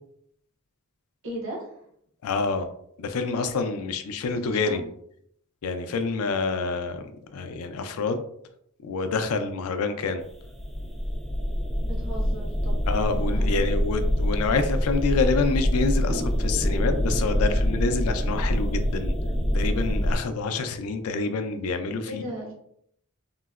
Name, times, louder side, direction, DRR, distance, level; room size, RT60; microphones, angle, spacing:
voice 1, 1.2-1.7 4.4-4.9 11.8-12.8 13.1-13.5 22.1-22.5, equal, 60° right, -2 dB, 0.8 m, -37 dB
voice 2, 2.2-2.7 3.0-4.8 5.6-7.0 7.3-8.2 8.8-10.2 12.9-19.1 19.5-22.2, left 4 dB, 75° left, 8 dB, 0.4 m, -27 dB
sound 1, 10.3-20.2, equal, ahead, 0.4 m, -25 dB
3.7 x 2.0 x 2.3 m, 0.71 s
head